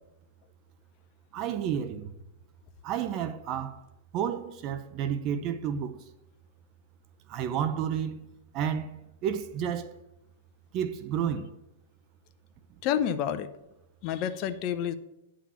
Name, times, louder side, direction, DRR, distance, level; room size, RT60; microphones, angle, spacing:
voice 1, 1.3-2.1 2.8-3.8 4.1-6.0 7.3-8.3 8.5-9.9 10.7-11.5, right 8 dB, 35° right, 0.6 m, -31 dB
voice 2, 12.8-13.5 14.0-14.9, left 9 dB, 40° left, 0.6 m, -29 dB
10.0 x 3.7 x 7.1 m
hypercardioid pair, 140°, 0 cm